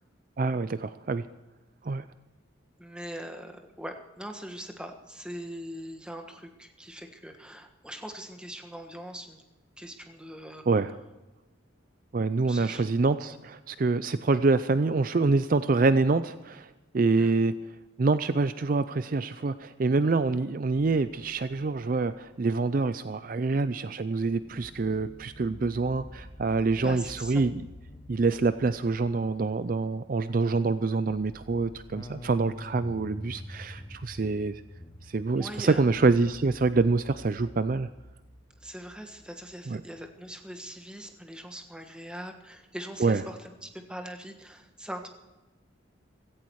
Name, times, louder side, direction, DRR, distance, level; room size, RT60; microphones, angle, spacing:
voice 1, 0.4-1.3 1.8-2.1 10.7-10.9 12.1-17.5 18.0-27.6 28.1-34.6 35.0-37.9 39.7-39.8 43.0-43.2, right 3 dB, 45° right, 13 dB, 0.4 m, -26 dB
voice 2, 2.8-9.4 9.8-10.6 12.5-12.8 17.2-17.3 26.8-27.5 35.3-35.8 38.6-45.1, equal, 5° right, 4 dB, 1.4 m, -41 dB
sound 1, 24.3-40.3, left 1 dB, 20° left, 0.9 m, -47 dB
16.5 x 15.5 x 4.7 m, 1.1 s
head